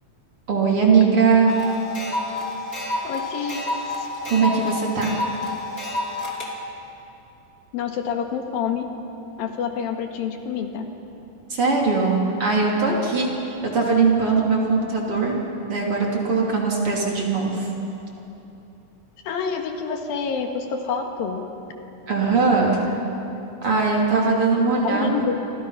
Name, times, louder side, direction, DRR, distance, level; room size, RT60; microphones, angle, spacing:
voice 1, 0.5-1.6 4.3-5.2 11.5-15.4 15.7-17.7 22.1-23.0 23.6-25.2, right 4 dB, 40° right, -2 dB, 3.8 m, -20 dB
sound 1, 1.5-6.5, left 2 dB, 25° left, 2.9 m, -29 dB
voice 2, 3.0-3.7 4.0-4.1 7.7-8.9 9.4-10.9 19.2-21.4 24.6-25.4, left 6 dB, 80° left, 4 dB, 3.5 m, -27 dB
30.0 x 25.5 x 5.8 m, 3.0 s
omnidirectional pair, 4.1 m